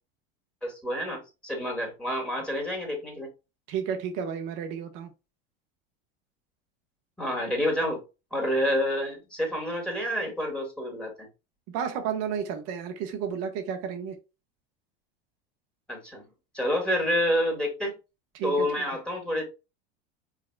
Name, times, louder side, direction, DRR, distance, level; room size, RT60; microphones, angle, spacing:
voice 1, 0.6-3.3 7.2-8.0 8.3-11.3 15.9-16.2 16.5-17.9 18.4-19.4, equal, 5° left, 2.0 m, -28 dB
voice 2, 3.7-5.1 11.7-14.2 18.3-18.7, right 7 dB, 60° right, 1.2 m, -32 dB
4.9 x 4.0 x 2.3 m
supercardioid pair, 110°, 29 cm